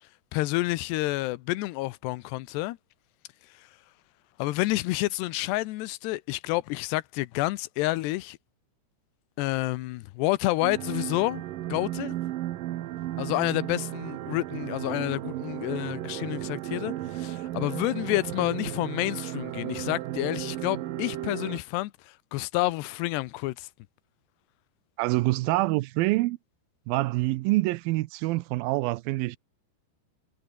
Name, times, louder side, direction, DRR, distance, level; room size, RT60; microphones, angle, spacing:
voice 1, 0.3-2.8 3.6-3.7 4.4-8.4 9.4-11.4 11.7-12.1 13.2-23.7, left 19 dB, 85° left, 2.9 m, -29 dB
sound 1, 10.6-21.6, right 14 dB, 70° right, 2.4 m, -34 dB
voice 2, 25.0-26.4 26.9-29.4, right 19 dB, 90° right, 2.1 m, -26 dB
omnidirectional pair, 4.9 m